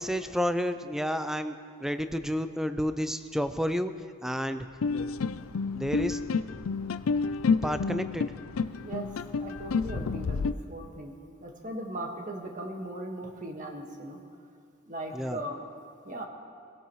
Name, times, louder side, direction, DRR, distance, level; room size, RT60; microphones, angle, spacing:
voice 1, 0.0-1.5 1.8-3.9 4.2-4.6 5.7-6.2 7.6-8.3 15.1-15.4, equal, ahead, 9 dB, 0.5 m, -30 dB
sound 1, 4.8-10.5, left 4 dB, 85° left, 0.5 m, -29 dB
voice 2, 9.4-14.2 14.9-15.6 16.0-16.2, right 1 dB, 40° right, 2 dB, 1.7 m, -38 dB
25.0 x 17.0 x 3.2 m, 2.2 s
head